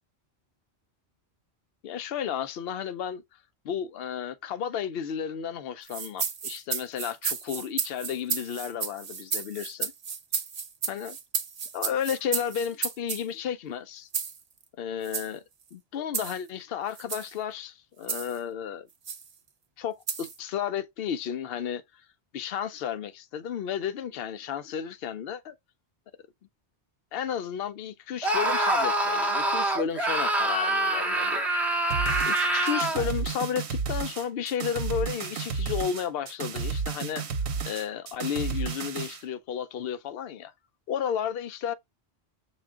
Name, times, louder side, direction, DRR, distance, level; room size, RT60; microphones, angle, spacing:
voice 1, 1.8-3.2 3.6-9.9 10.9-11.2 11.7-14.1 14.8-15.4 15.7-18.9 19.8-21.8 22.3-25.5 27.1-31.5 32.3-37.2 37.6-40.5 40.9-41.7, left 8 dB, 65° left, 0.8 m, -33 dB
sound 1, 5.9-13.2 14.1-14.4 15.0-15.3 16.1-16.4 17.0-17.3 18.1-18.4 19.1-19.3 20.1-20.4, right 6 dB, 45° right, 0.6 m, -32 dB
Screaming, 28.2-33.1, right 1 dB, ahead, 0.6 m, -25 dB
sound 2, 31.9-39.2, right 5 dB, 85° right, 0.9 m, -32 dB
5.9 x 2.3 x 3.6 m
omnidirectional pair, 1.1 m